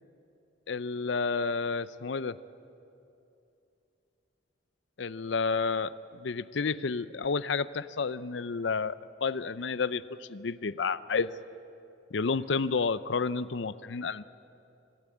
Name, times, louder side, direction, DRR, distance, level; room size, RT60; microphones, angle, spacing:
voice 1, 0.7-2.3 5.0-11.4 12.1-14.2, left 4 dB, 70° left, 16 dB, 0.6 m, -30 dB
25.0 x 16.0 x 8.6 m, 2.7 s
head